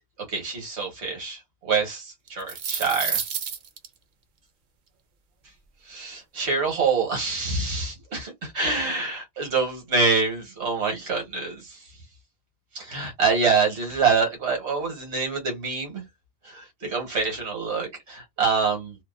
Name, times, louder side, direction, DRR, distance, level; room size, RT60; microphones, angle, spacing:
voice 1, 0.3-3.2 5.9-11.8 12.7-16.0 16.4-19.0, right 4 dB, 85° right, 1.4 m, -26 dB
sound 1, 2.3-3.9, right 7 dB, 60° right, 0.6 m, -29 dB
2.8 x 2.1 x 2.2 m
omnidirectional pair, 1.1 m